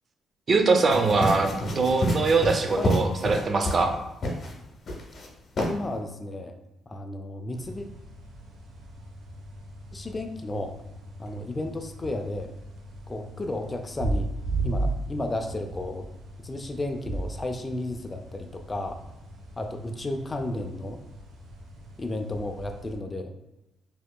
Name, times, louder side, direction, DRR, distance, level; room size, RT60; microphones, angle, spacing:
voice 1, 0.5-3.9, right 4 dB, 45° right, 5 dB, 0.5 m, -22 dB
sound 1, 0.9-3.9 4.2-4.5 4.9-5.3 5.6-5.7, equal, 50° left, 0.7 m, -28 dB
voice 2, 5.7-6.5 6.9-7.9 9.9-10.7 11.2-12.5 13.1-14.3 14.6-16.1 16.4-19.0 19.6-21.0 22.0-23.3, left 2 dB, 25° left, 4 dB, 0.3 m, -33 dB
sound 2, 7.5-23.0, right 2 dB, 80° right, 0.7 m, -36 dB
4.3 x 2.9 x 2.2 m, 0.94 s
cardioid pair, 90°, 0 cm